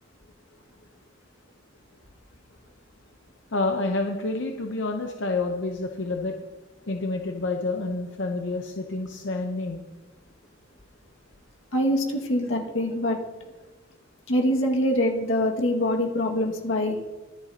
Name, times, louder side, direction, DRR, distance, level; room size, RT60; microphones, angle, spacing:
voice 1, 3.5-6.3 6.9-9.8, left 3 dB, 65° left, 3 dB, 0.8 m, -28 dB
voice 2, 11.7-13.2 14.3-17.0, left 1 dB, 85° left, 1 dB, 2.0 m, -24 dB
24.0 x 8.1 x 2.9 m, 1.2 s
head